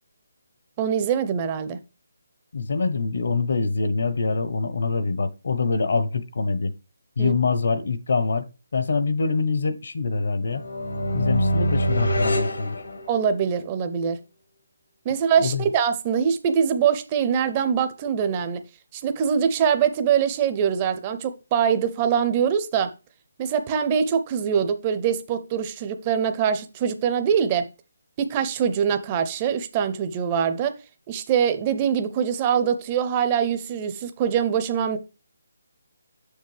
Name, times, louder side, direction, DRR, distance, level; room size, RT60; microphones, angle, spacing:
voice 1, 0.8-1.8 7.2-7.3 13.1-14.2 15.0-18.6 18.9-22.9 23.4-27.7 28.2-30.8 31.1-35.0, right 7 dB, 15° right, 0.5 m, -23 dB
voice 2, 2.5-6.7 7.2-8.5 8.7-10.6 11.1-12.8 15.4-15.6, left 4 dB, 55° left, 0.8 m, -24 dB
sound 1, 10.5-13.5, equal, 80° left, 1.8 m, -25 dB
6.6 x 6.3 x 3.2 m
hypercardioid pair, 175°, 0 cm